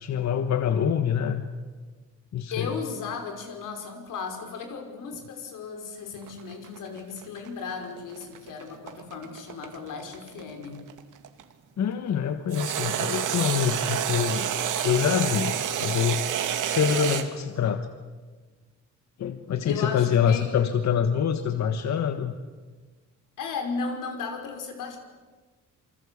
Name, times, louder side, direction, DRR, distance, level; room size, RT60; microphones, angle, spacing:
voice 1, 0.0-1.4 2.3-2.7 11.8-14.5 14.8-16.2 16.6-17.8 19.2-22.3, left 8 dB, 60° left, 8 dB, 1.5 m, -25 dB
voice 2, 2.5-10.9 19.7-20.6 23.4-25.0, left 5 dB, 85° left, 4 dB, 5.6 m, -35 dB
sound 1, 6.2-11.4 12.5-17.3, right 9 dB, 80° right, 2.5 m, -29 dB
28.0 x 25.0 x 8.5 m, 1.4 s
cardioid pair, 145°, 31 cm